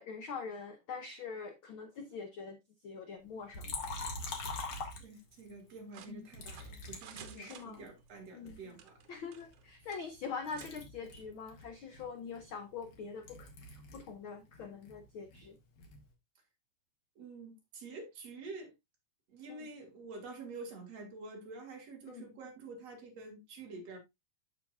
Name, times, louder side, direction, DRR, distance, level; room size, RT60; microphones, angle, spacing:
voice 1, 0.0-2.6 2.8-3.7 6.1-6.3 7.4-7.8 8.3-8.6 9.1-15.6 19.5-19.7 22.1-22.3, left 5 dB, 80° left, 1.1 m, -44 dB
Liquid, 3.5-5.5 6.3-7.9 8.5-10.2 10.5-14.2 14.4-16.1, left 3 dB, 55° left, 2.7 m, -44 dB
voice 2, 5.0-9.0 17.2-18.7 19.3-24.0, right 3 dB, 60° right, 3.0 m, -48 dB
sound 1, 5.9-8.2 8.7-9.6 9.9-10.1 10.6-10.7, right 9 dB, 85° right, 2.6 m, -53 dB
13.5 x 4.8 x 2.4 m
omnidirectional pair, 3.5 m